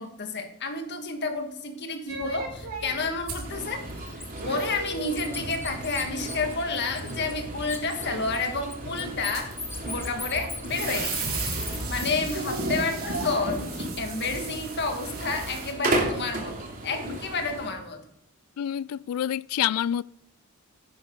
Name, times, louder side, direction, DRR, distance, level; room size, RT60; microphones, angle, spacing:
voice 1, 0.0-9.6 9.8-11.3 11.9-16.5 16.8-18.0, left 3 dB, 55° left, 1.8 m, -30 dB
sound 1, 2.1-15.7, right 2 dB, 85° right, 3.6 m, -36 dB
Bird, 3.3-3.5 3.9-7.4 7.6-12.4, left 3 dB, 10° left, 1.5 m, -39 dB
sound 2, 3.4-17.7, right 1 dB, 40° right, 2.8 m, -36 dB
voice 2, 18.6-20.0, left 10 dB, 85° left, 0.3 m, -27 dB
11.0 x 10.5 x 3.9 m
head